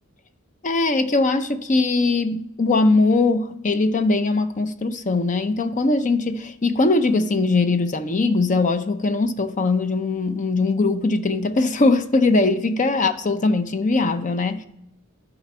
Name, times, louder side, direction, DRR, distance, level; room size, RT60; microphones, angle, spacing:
voice 1, 0.6-14.7, left 3 dB, 35° left, 0.6 m, -21 dB
12.0 x 5.0 x 4.2 m
head